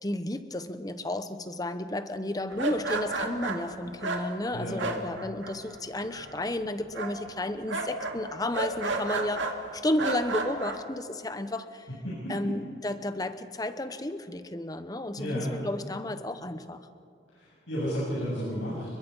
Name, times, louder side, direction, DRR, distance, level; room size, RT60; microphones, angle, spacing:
voice 1, 0.0-11.9 12.3-16.9, left 1 dB, 20° left, 10 dB, 1.0 m, -32 dB
sound 1, 2.5-5.8 6.0-6.6 6.9-9.6 10.0-10.8, right 3 dB, 80° right, 2.3 m, -32 dB
voice 2, 12.0-12.5 15.2-15.5 17.3-18.9, equal, 75° left, -8 dB, 8.0 m, -32 dB
29.5 x 22.0 x 5.5 m, 2.3 s
head